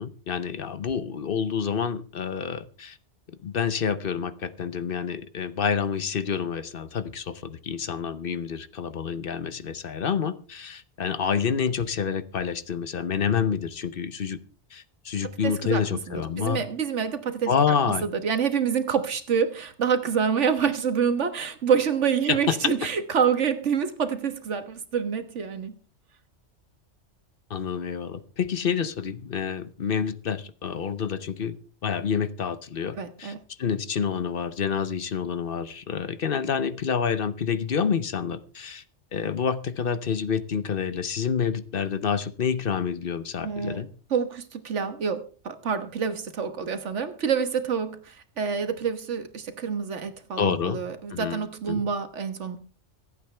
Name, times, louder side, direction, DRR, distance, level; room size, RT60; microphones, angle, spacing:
voice 1, 0.0-3.0 3.4-14.4 14.7-16.6 17.5-18.0 22.3-22.6 27.5-31.6 31.8-33.3 33.6-38.8 39.1-43.9 50.4-50.8 51.1-51.4 51.7-51.8, left 7 dB, 55° left, 0.9 m, -28 dB
voice 2, 15.4-17.5 17.8-25.7 33.0-33.4 43.4-43.8 44.1-52.7, right 6 dB, 85° right, 1.7 m, -27 dB
25.5 x 8.6 x 3.4 m
omnidirectional pair, 1.2 m